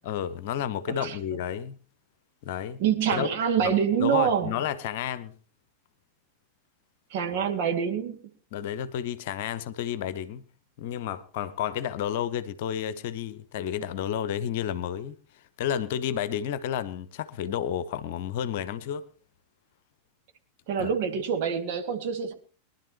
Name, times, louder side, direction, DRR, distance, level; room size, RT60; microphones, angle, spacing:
voice 1, 0.0-1.8 2.4-2.8 3.1-3.3 3.6-3.7 4.0-5.3 8.5-10.4 10.8-19.1 20.8-20.9, left 9 dB, 50° left, 0.9 m, -31 dB
voice 2, 2.8-4.5 7.1-8.2 20.7-22.3, right 8 dB, 50° right, 2.3 m, -26 dB
23.0 x 11.5 x 3.1 m
figure-of-eight pair, 90°, 0 cm